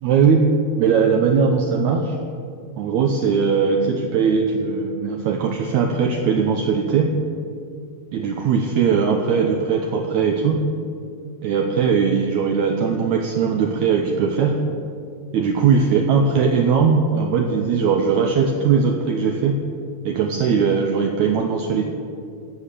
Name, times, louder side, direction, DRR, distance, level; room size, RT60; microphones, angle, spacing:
voice 1, 0.0-0.4 0.8-2.2 2.8-7.1 8.1-10.6 11.4-14.5 15.3-19.5 20.0-21.9, right 6 dB, 90° right, 3 dB, 1.6 m, -19 dB
13.5 x 7.5 x 6.7 m, 2.4 s
omnidirectional pair, 4.2 m